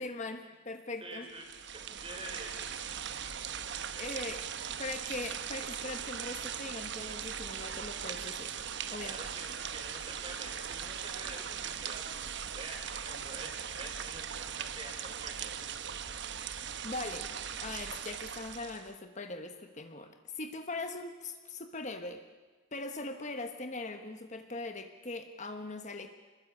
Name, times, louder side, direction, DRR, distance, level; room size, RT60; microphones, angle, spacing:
voice 1, 0.0-1.3 3.9-4.5 4.8-8.5 8.9-9.2 16.2-17.3 17.6-22.2 22.7-26.1, left 2 dB, 35° left, 7 dB, 1.2 m, -41 dB
voice 2, 1.0-1.5 1.7-2.5 3.1-3.2 9.0-12.0 12.4-15.5, right 2 dB, 25° right, 2 dB, 5.2 m, -47 dB
sound 1, 1.3-18.9, right 8 dB, 60° right, 1.1 m, -39 dB
25.5 x 21.0 x 8.7 m, 1.3 s
head